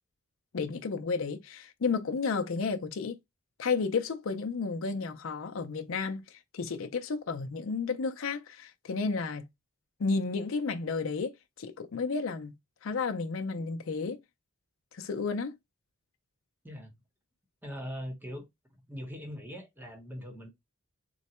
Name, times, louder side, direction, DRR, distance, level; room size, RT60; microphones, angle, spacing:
voice 1, 0.5-3.2 3.6-9.5 10.0-12.5 12.8-14.2 14.9-15.5, left 4 dB, 65° left, 0.5 m, -32 dB
voice 2, 17.6-18.5 18.9-20.5, equal, 10° right, 0.9 m, -41 dB
3.8 x 2.1 x 4.2 m
head